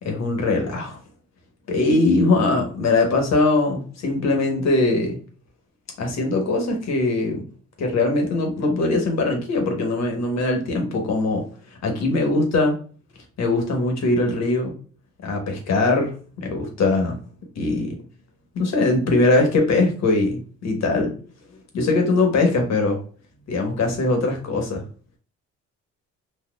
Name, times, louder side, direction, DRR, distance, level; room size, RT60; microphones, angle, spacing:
voice 1, 0.0-1.0 1.7-5.2 6.0-7.4 7.8-11.5 11.8-12.7 13.4-14.8 15.2-16.1 16.4-17.2 17.5-18.0 18.5-21.1 21.7-23.0 23.5-24.8, left 2 dB, 60° left, 3 dB, 1.3 m, -21 dB
4.2 x 2.5 x 2.4 m, 0.41 s
cardioid pair, 90°, 30 cm